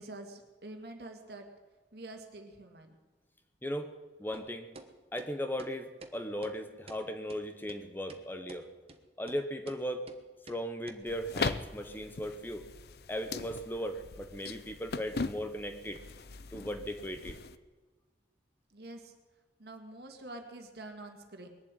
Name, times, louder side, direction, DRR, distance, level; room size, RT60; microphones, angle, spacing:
voice 1, 0.0-1.5 1.9-3.0 18.7-19.1 19.6-21.5, right 2 dB, 60° right, 4 dB, 2.1 m, -46 dB
voice 2, 4.2-4.7 5.1-8.7 9.2-10.0 10.5-12.6 13.1-16.0 16.5-17.4, equal, 10° left, 8 dB, 0.8 m, -37 dB
sound 1, 4.3-4.5 4.8-4.9 5.2-5.3 5.6-5.7 6.0-6.1 6.4-6.6 6.9-7.0 7.3-7.4 7.7-7.8 8.1-8.2 8.5-8.6 8.9-9.0 9.3-9.4 9.7-9.8 10.1-10.2 10.5-10.6 10.9-11.0, right 2 dB, 35° right, 1.1 m, -49 dB
sound 2, 11.1-17.6, left 4 dB, 60° left, 0.6 m, -40 dB
21.0 x 7.6 x 9.0 m, 1.3 s
head